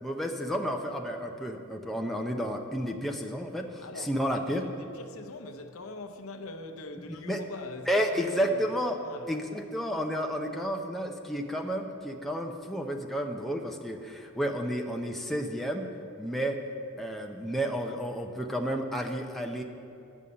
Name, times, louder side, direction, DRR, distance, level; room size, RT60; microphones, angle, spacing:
voice 1, 0.0-4.6 7.1-7.4 7.9-9.0 9.3-15.9 16.2-16.6 17.0-19.6, equal, ahead, 0.5 m, -31 dB
voice 2, 3.8-8.7 9.0-9.3, left 2 dB, 70° left, 0.7 m, -42 dB
11.0 x 5.4 x 8.6 m
head